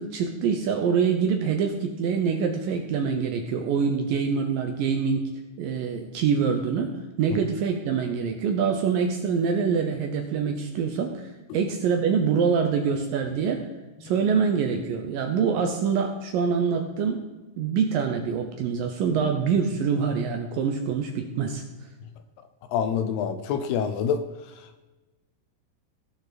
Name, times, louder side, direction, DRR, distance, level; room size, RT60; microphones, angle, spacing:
voice 1, 0.0-5.3 5.6-13.7 14.0-17.2 17.6-21.6, right 6 dB, 80° right, 4 dB, 2.0 m, -25 dB
voice 2, 22.7-24.2, left 7 dB, 80° left, 9 dB, 2.4 m, -26 dB
18.0 x 6.6 x 4.1 m, 1.2 s
omnidirectional pair, 5.2 m